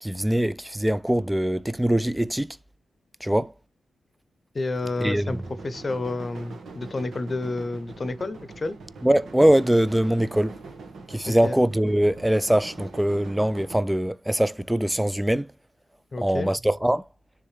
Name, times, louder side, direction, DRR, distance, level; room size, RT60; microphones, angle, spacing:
voice 1, 0.0-2.6 3.2-3.5 5.0-5.4 9.0-10.6 11.1-15.5 16.2-17.0, right 1 dB, 5° right, 0.4 m, -22 dB
voice 2, 4.5-8.8 11.3-11.6 16.1-16.5, left 2 dB, 35° left, 0.8 m, -30 dB
sound 1, 4.7-13.8, right 3 dB, 75° right, 1.7 m, -42 dB
9.8 x 3.6 x 3.3 m
wide cardioid pair, 100°, 0 cm